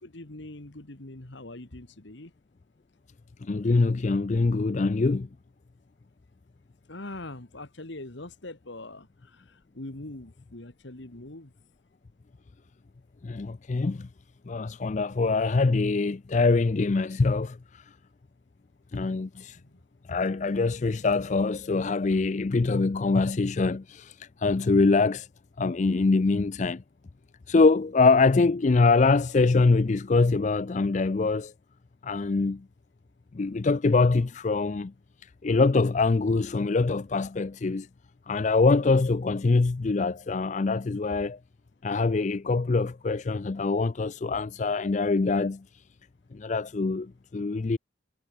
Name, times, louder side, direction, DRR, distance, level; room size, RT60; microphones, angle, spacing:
voice 1, 0.0-2.3 6.9-9.4 9.7-11.5 19.6-19.8, left 2 dB, 65° left, 1.9 m, -42 dB
voice 2, 3.4-5.3 13.2-14.1 14.5-17.9 18.9-19.6 20.1-25.3 25.6-26.8 27.5-31.5 32.0-32.6 33.3-34.9 35.2-37.9 38.3-41.4 41.8-45.6 46.3-47.8, left 3 dB, 35° left, 0.4 m, -24 dB
head